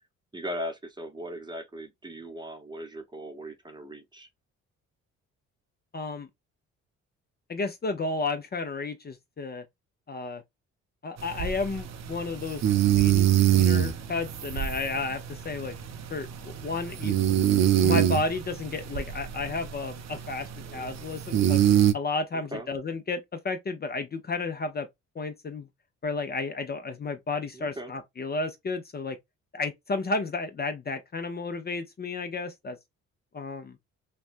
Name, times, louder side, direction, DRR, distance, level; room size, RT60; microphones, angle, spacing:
voice 1, 0.3-4.3 20.6-20.9 22.3-22.7 27.5-27.9, equal, 15° right, 0.9 m, -39 dB
voice 2, 5.9-6.3 7.5-9.6 10.1-10.4 11.0-15.7 16.1-17.4 17.8-21.6 21.9-24.9 25.2-25.7 26.0-29.2 29.5-32.8 33.3-33.8, left 3 dB, 30° left, 0.7 m, -32 dB
sound 1, 11.2-21.9, right 11 dB, 60° right, 0.6 m, -25 dB
3.3 x 2.2 x 2.5 m
cardioid pair, 90°, 30 cm